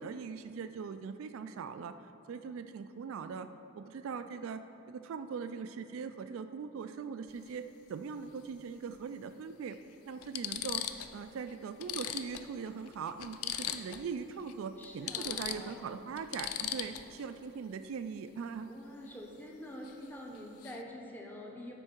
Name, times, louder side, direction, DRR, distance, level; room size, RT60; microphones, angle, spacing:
voice 1, 0.0-1.9 2.3-3.5 3.8-9.8 10.1-10.8 11.1-18.7, right 6 dB, 70° right, 10 dB, 0.3 m, -41 dB
sound 1, 7.3-7.5 9.0-9.1 9.7-9.8 10.2-11.2 11.5-11.6 11.8-14.1 14.4-14.5 14.8-17.2 19.8-20.1 20.3-20.8, left 10 dB, 80° left, 0.4 m, -39 dB
voice 2, 14.8-15.8 18.7-21.7, left 1 dB, 10° left, -1 dB, 0.7 m, -46 dB
12.5 x 4.5 x 4.5 m, 2.9 s
head